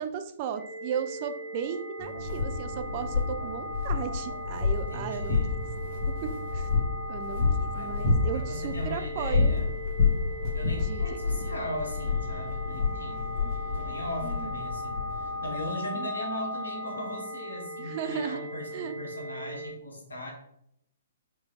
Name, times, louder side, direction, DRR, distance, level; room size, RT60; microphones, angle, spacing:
voice 1, 0.0-5.4 6.2-6.7 7.1-9.6 10.9-11.0 13.3-13.5 14.2-14.6 15.9-16.1 17.8-18.5 18.7-18.9, right 8 dB, 35° right, 8 dB, 0.3 m, -35 dB
sound 1, 0.6-19.7, left 1 dB, 20° left, 1.5 m, -38 dB
sound 2, 2.0-15.5, left 4 dB, 35° left, 1.2 m, -29 dB
voice 2, 4.7-5.6 7.6-9.7 10.5-13.4 13.7-20.3, left 1 dB, 70° left, 0 dB, 1.3 m, -38 dB
4.7 x 3.0 x 2.4 m, 0.75 s
figure-of-eight pair, 120°, 0 cm